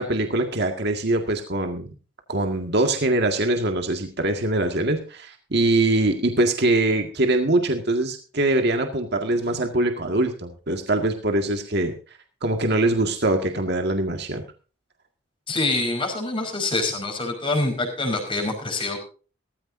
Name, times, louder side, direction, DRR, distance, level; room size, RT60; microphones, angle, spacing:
voice 1, 0.0-1.9 2.3-11.9 12.4-14.4, right 2 dB, 55° right, 4 dB, 1.9 m, -23 dB
voice 2, 15.5-19.0, left 2 dB, 25° left, 3 dB, 5.1 m, -25 dB
17.5 x 15.0 x 2.7 m, 0.36 s
head